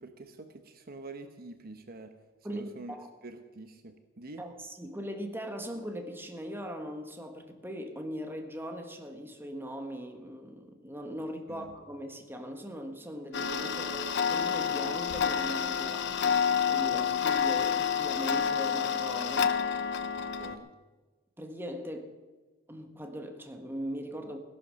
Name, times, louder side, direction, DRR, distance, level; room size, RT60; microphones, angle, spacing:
voice 1, 0.0-2.1 2.5-2.9 3.2-4.4 11.5-11.7 20.1-20.7, right 2 dB, 50° right, 8 dB, 1.1 m, -46 dB
voice 2, 2.4-3.1 4.4-16.2 16.7-19.6 21.4-22.1 22.7-24.4, equal, 10° right, 5 dB, 1.5 m, -40 dB
Tick-tock, 13.3-20.6, left 7 dB, 60° left, 0.8 m, -29 dB
17.0 x 11.0 x 6.4 m, 1.2 s
head